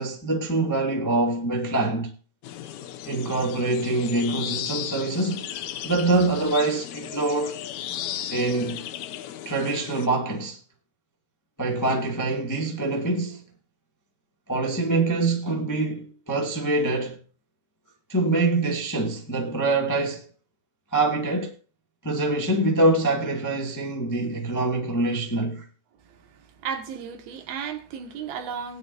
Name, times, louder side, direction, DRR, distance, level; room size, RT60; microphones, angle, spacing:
voice 1, 0.0-2.1 3.0-5.5 5.8-7.6 8.3-8.9 9.4-10.6 11.6-13.4 14.5-17.2 18.1-20.2 20.9-21.5 22.0-25.7, right 2 dB, 10° left, 0.9 m, -25 dB
sound 1, 2.4-10.1, left 11 dB, 70° left, 1.8 m, -35 dB
voice 2, 26.1-28.8, right 7 dB, 85° right, 3.5 m, -34 dB
19.0 x 10.5 x 2.6 m
omnidirectional pair, 4.2 m